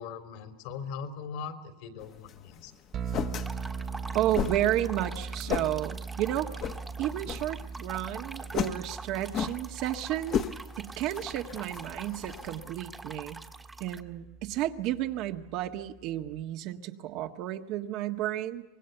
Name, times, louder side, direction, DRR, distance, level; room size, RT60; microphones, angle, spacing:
voice 1, 0.0-2.7, left 6 dB, 70° left, 8 dB, 3.4 m, -40 dB
sound 1, 2.0-12.7, left 8 dB, 40° left, 1.3 m, -37 dB
sound 2, 2.9-16.4, right 5 dB, 40° right, 1.4 m, -41 dB
sound 3, 3.4-14.0, right 3 dB, 10° right, 1.5 m, -45 dB
voice 2, 4.1-6.7 7.0-10.4 10.8-13.4 13.8-18.6, right 13 dB, 60° right, 5 dB, 1.7 m, -32 dB
25.0 x 20.5 x 8.0 m, 1.1 s
supercardioid pair, 125°, 0 cm